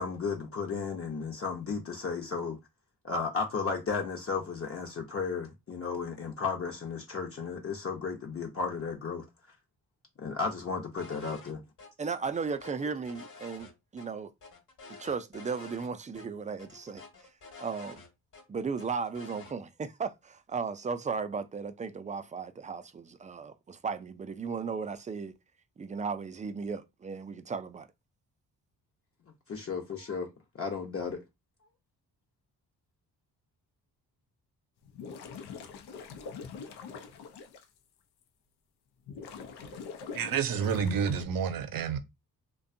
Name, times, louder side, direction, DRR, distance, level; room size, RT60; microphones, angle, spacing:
voice 1, 0.0-2.6 3.0-9.2 10.2-11.6 29.5-31.2, left 5 dB, 35° left, 0.7 m, -34 dB
sound 1, 11.0-11.5 11.8-11.9 12.2-14.1 14.4-15.9 16.1-16.3 16.6-18.4 18.8-19.5, left 4 dB, 50° left, 1.2 m, -49 dB
voice 2, 12.0-14.3 14.9-17.0 17.6-18.0 18.5-25.3 25.8-27.9, right 5 dB, 20° right, 0.3 m, -35 dB
sound 2, 34.8-37.6 38.2-38.3 39.1-41.2, left 5 dB, 85° left, 0.6 m, -44 dB
voice 3, 40.1-42.0, right 7 dB, 60° right, 0.6 m, -29 dB
2.6 x 2.2 x 2.5 m
cardioid pair, 75°, 38 cm